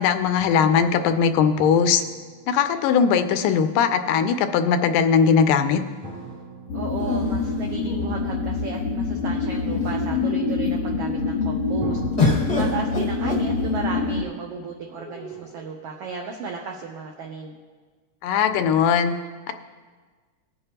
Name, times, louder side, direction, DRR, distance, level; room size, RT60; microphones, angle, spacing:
voice 1, 0.0-2.0 2.5-5.8 18.2-19.1, left 7 dB, 85° left, 9 dB, 2.2 m, -19 dB
sound 1, 1.6-3.4 6.0-8.9 11.8-15.6, right 2 dB, 60° right, 3.5 m, -42 dB
sound 2, 3.8-5.0 6.9-8.5 9.2-9.3 9.6-10.2 12.2-14.0 15.0-15.7, left 3 dB, 35° left, 0.6 m, -29 dB
sound 3, 6.7-14.2, left 4 dB, 70° left, 1.5 m, -26 dB
voice 2, 6.7-12.0 12.5-17.6, right 4 dB, 85° right, 1 dB, 1.3 m, -34 dB
18.5 x 8.6 x 2.9 m, 1.5 s
omnidirectional pair, 3.7 m